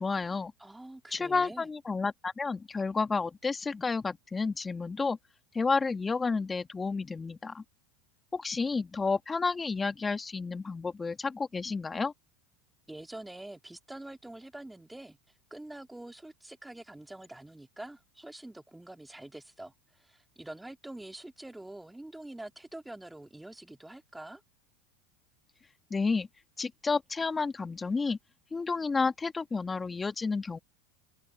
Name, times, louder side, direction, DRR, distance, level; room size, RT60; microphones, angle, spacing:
voice 1, 0.0-0.5 1.1-5.2 5.5-7.6 8.3-12.1 25.9-26.3 26.6-28.2 28.5-30.6, left 4 dB, 20° left, 1.5 m, -31 dB
voice 2, 0.6-1.7 12.9-15.2 15.5-24.4, right 1 dB, 5° right, 2.8 m, -46 dB
hypercardioid pair, 90°, 0 cm